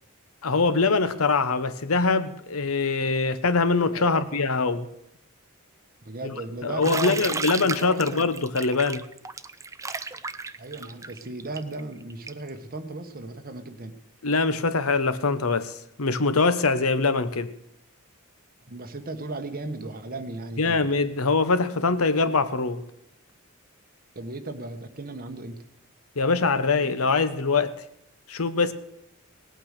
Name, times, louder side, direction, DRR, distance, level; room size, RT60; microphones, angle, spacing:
voice 1, 0.4-4.9 6.2-6.3 6.6-9.0 14.2-17.5 20.6-22.8 26.2-27.7 28.3-28.7, left 4 dB, 80° left, 0.9 m, -23 dB
voice 2, 3.9-4.4 6.0-8.3 10.6-13.9 18.7-21.0 24.1-25.6, right 2 dB, 45° right, 1.3 m, -36 dB
Bathtub (filling or washing), 6.8-12.5, right 4 dB, 15° right, 0.5 m, -33 dB
18.0 x 8.9 x 6.6 m
head